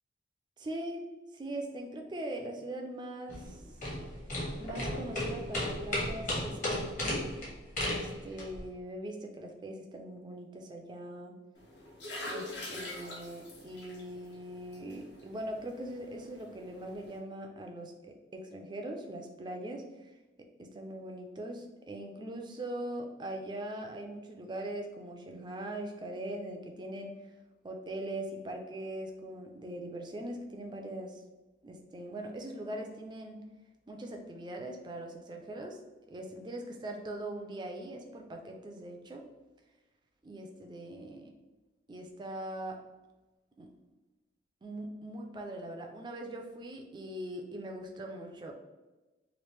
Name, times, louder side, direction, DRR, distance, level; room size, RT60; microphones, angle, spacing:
voice 1, 0.6-1.0 1.3-3.6 4.6-7.3 7.9-11.4 12.3-20.1 20.6-27.1 27.6-31.2 31.6-33.4 33.9-35.8 36.1-39.2 40.2-41.3 41.9-42.8 43.6-43.7 44.6-48.5, right 1 dB, 20° right, 3 dB, 0.3 m, -41 dB
sound 1, 3.3-8.6, left 1 dB, 40° left, 1.0 m, -34 dB
sound 2, 11.6-17.2, left 1 dB, 60° left, 0.7 m, -45 dB
3.0 x 2.4 x 3.2 m, 1.1 s
head